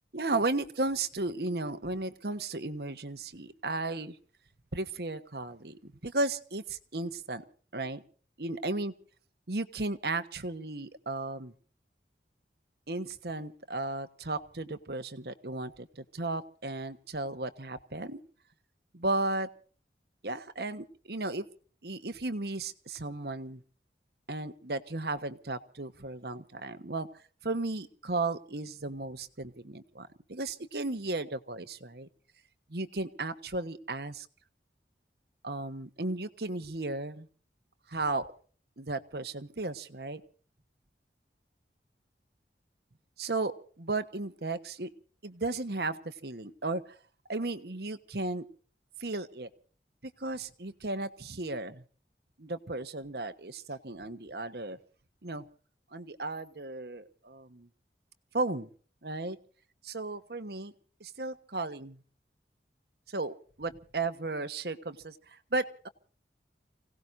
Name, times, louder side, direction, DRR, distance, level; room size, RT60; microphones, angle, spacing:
voice 1, 0.1-4.2 4.7-7.4 7.7-8.0 8.4-8.9 9.5-11.5 12.9-18.2 18.9-19.5 20.2-21.4 21.8-23.6 24.3-27.1 27.4-32.1 32.7-34.3 35.4-37.3 37.9-38.3 38.8-40.2 43.2-44.9 45.2-47.0 47.3-48.4 49.0-49.5 50.0-51.8 52.4-54.8 55.2-55.4 55.9-57.7 58.3-58.7 59.0-59.4 59.8-60.7 61.0-62.0 63.1-65.9, right 2 dB, 65° right, 10 dB, 1.3 m, -35 dB
30.0 x 17.5 x 2.7 m, 0.43 s
head